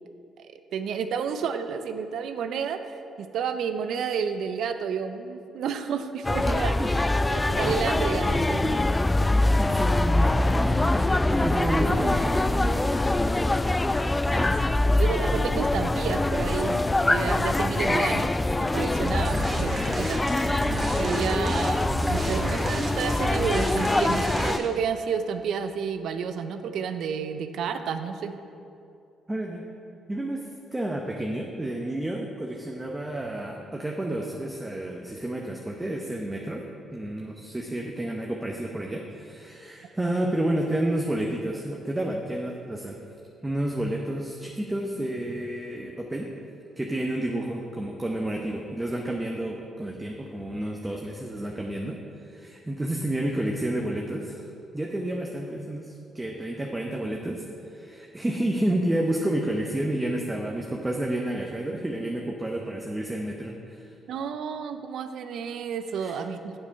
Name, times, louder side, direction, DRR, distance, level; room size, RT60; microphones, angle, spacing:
voice 1, 0.7-2.8 3.2-6.8 7.3-8.8 14.3-14.5 15.0-20.3 21.0-28.4 64.1-66.5, right 6 dB, 70° right, 9 dB, 0.5 m, -31 dB
sound 1, 6.2-24.6, left 2 dB, 20° left, 0.3 m, -24 dB
voice 2, 9.6-10.3 10.6-10.9 11.2-13.4 29.3-29.6 30.1-30.4 30.7-36.6 36.9-43.0 43.4-46.3 46.8-52.0 52.2-54.4 54.7-57.4 57.7-63.9 66.0-66.2, right 1 dB, 15° right, 0 dB, 0.9 m, -30 dB
sound 2, 19.1-24.8, right 1 dB, 45° right, 1.8 m, -32 dB
7.1 x 6.7 x 5.3 m, 2.6 s
hypercardioid pair, 50°, 0 cm